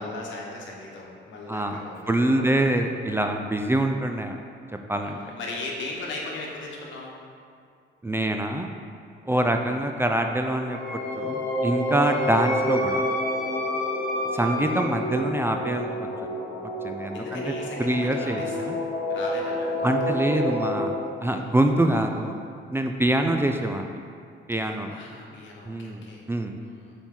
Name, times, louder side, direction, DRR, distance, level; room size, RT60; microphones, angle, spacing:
voice 1, 0.0-2.6 5.0-7.2 9.3-9.5 17.1-20.5 21.3-21.5 23.0-23.2 24.9-26.3 26.6-26.9, left 2 dB, 70° left, -2 dB, 1.3 m, -38 dB
voice 2, 1.5-1.8 2.1-4.4 4.9-5.2 8.0-8.7 9.3-10.8 11.2-13.0 14.3-16.1 16.6-17.4 17.8-18.8 19.8-20.9 21.2-22.4 22.7-24.0 24.5-24.9 25.7-26.0 26.3-26.5, right 1 dB, 10° right, 4 dB, 0.4 m, -25 dB
sound 1, 10.3-20.9, equal, 85° left, 1.0 m, -29 dB
Wind instrument woodwind instrument, 10.7-14.9, left 1 dB, 45° left, 1.5 m, -32 dB
7.0 x 4.4 x 3.8 m, 2.3 s
cardioid pair, 90°, 20 cm